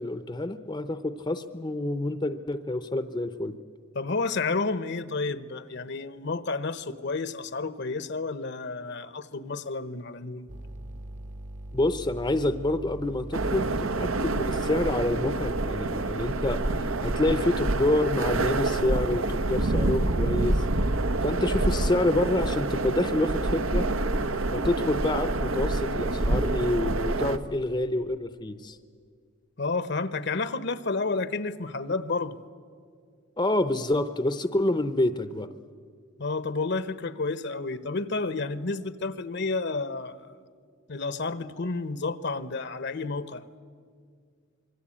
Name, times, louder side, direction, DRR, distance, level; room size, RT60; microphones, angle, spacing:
voice 1, 0.0-3.5 11.7-20.6 21.2-23.9 24.5-28.8 33.4-35.5, left 1 dB, 20° left, 0.7 m, -27 dB
voice 2, 3.9-10.5 29.6-32.4 36.2-40.3 40.9-43.4, left 3 dB, 60° left, 0.9 m, -31 dB
sound 1, 10.5-22.8, right 1 dB, 35° right, 0.9 m, -41 dB
sound 2, 13.3-27.4, right 2 dB, 85° right, 1.1 m, -27 dB
26.0 x 23.0 x 8.7 m
head